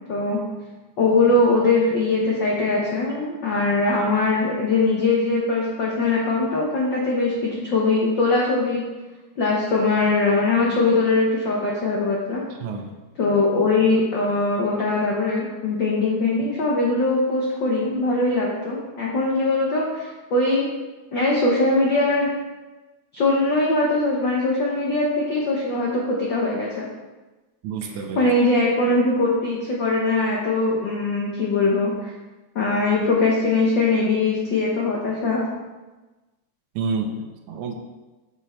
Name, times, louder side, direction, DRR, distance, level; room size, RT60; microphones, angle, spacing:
voice 1, 0.1-0.4 1.0-8.8 9.4-12.4 13.2-20.7 21.1-22.3 23.1-26.8 28.2-32.1 32.5-35.4, left 3 dB, 70° left, -3 dB, 1.0 m, -21 dB
voice 2, 12.6-13.0 27.6-28.3 36.8-37.7, right 4 dB, 75° right, 4 dB, 2.0 m, -29 dB
6.8 x 6.0 x 4.3 m, 1.2 s
omnidirectional pair, 3.5 m